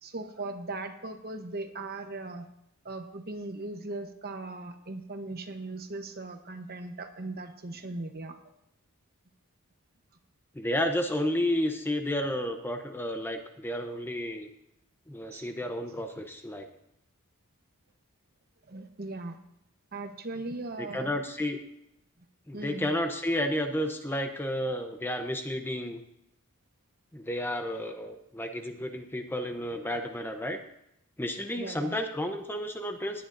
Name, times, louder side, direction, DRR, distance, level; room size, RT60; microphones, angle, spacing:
voice 1, 0.0-2.5 2.8-8.4 15.3-15.5 18.7-19.4 19.9-21.1 22.5-22.9 31.6-32.0, right 2 dB, 45° right, 7 dB, 1.0 m, -38 dB
voice 2, 10.5-14.5 15.1-16.7 20.8-21.6 22.5-26.0 27.1-30.6 31.2-33.2, left 1 dB, 10° left, 5 dB, 0.7 m, -31 dB
19.0 x 10.0 x 2.6 m, 0.81 s
head